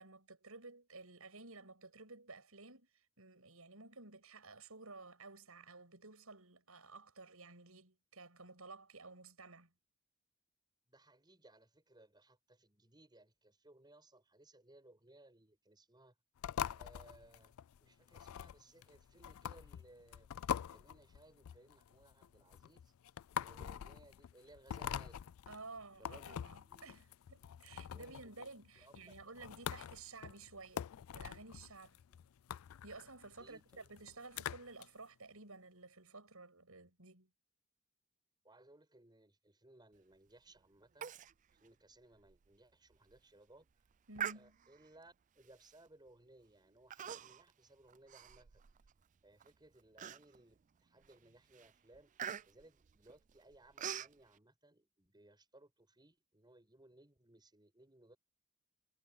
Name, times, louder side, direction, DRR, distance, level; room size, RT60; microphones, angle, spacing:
voice 1, 0.0-9.7 25.5-32.0 32.8-37.3 44.1-44.6, right 3 dB, 75° right, 7.6 m, -54 dB
voice 2, 10.8-16.1 16.7-20.3 20.7-22.9 23.4-25.2 25.9-26.9 27.9-28.5 28.8-29.1 32.1-32.2 33.3-33.9 38.4-41.1 41.5-43.7 44.3-48.6 49.2-52.1 52.4-58.2, right 2 dB, 20° right, 6.3 m, -63 dB
sound 1, 16.4-34.8, left 9 dB, 70° left, 0.4 m, -45 dB
Human voice, 41.0-41.3 41.6-41.7 42.3-42.4 42.9-43.2 44.1-44.9 45.6-45.9 46.9-47.5 47.9-48.9 49.4-49.5 50.0-50.5 51.0-51.3 51.5-54.1, right 9 dB, 35° right, 0.4 m, -44 dB
head